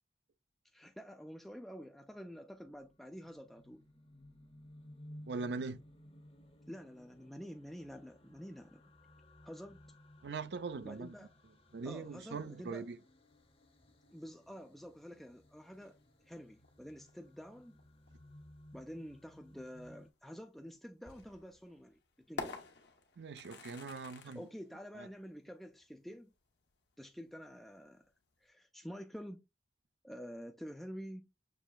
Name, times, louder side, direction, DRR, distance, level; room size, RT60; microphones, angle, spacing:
voice 1, 0.7-3.8 6.7-8.8 9.4-9.8 10.8-11.3 11.8-12.9 14.1-16.0 16.2-17.8 18.7-22.0 22.3-22.6 24.2-26.3 27.0-28.1 28.4-29.4 30.0-31.5, equal, ahead, 0.3 m, -49 dB
sound 1, 2.3-20.1, left 1 dB, 35° left, 0.8 m, -59 dB
voice 2, 5.3-5.8 10.2-11.1 11.7-13.0 23.2-24.4 25.0-25.1, right 4 dB, 70° right, 0.5 m, -41 dB
sound 2, 13.2-28.5, left 3 dB, 70° left, 1.0 m, -53 dB
6.3 x 3.1 x 2.3 m
head